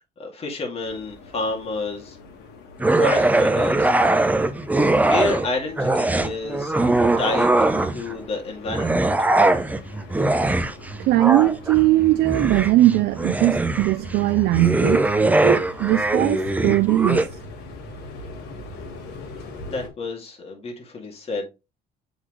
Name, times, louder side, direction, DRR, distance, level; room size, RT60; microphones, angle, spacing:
voice 1, 0.2-2.2 2.9-3.9 5.0-6.7 7.2-7.5 7.9-9.3 19.7-21.5, left 3 dB, 35° left, 2.3 m, -29 dB
sound 1, 0.8-19.9, left 3 dB, 80° left, 1.6 m, -42 dB
sound 2, 2.8-5.5 5.8-8.2 8.7-17.3, right 2 dB, 10° right, 0.6 m, -21 dB
voice 2, 11.0-15.0 15.4-17.3, right 16 dB, 75° right, 0.4 m, -19 dB
7.8 x 4.0 x 3.1 m
cardioid pair, 110°, 17 cm